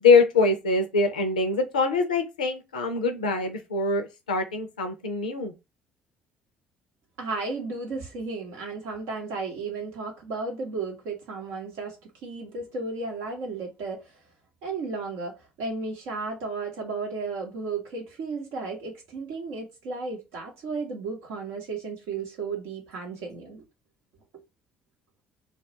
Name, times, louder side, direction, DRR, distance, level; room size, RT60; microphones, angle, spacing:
voice 1, 0.0-5.5, left 4 dB, 85° left, 0.4 m, -23 dB
voice 2, 7.2-12.0 12.2-14.2 14.6-23.6, right 4 dB, 70° right, 0.7 m, -34 dB
2.3 x 2.0 x 2.8 m
figure-of-eight pair, 50°, 4 cm